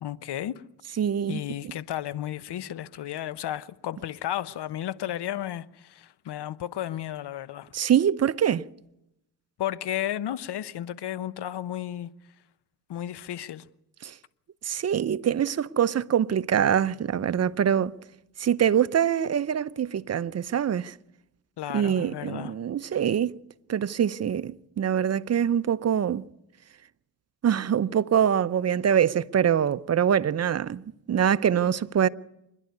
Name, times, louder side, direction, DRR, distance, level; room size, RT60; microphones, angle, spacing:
voice 1, 0.0-0.6 1.3-7.7 9.6-12.1 12.9-13.7 21.6-22.5, left 12 dB, 55° left, 1.0 m, -33 dB
voice 2, 1.0-1.4 7.7-8.7 14.0-14.1 14.6-17.9 18.4-20.9 21.7-23.3 23.7-26.2 27.4-32.1, right 9 dB, 35° right, 0.7 m, -24 dB
26.5 x 11.0 x 9.4 m
supercardioid pair, 60°, 48 cm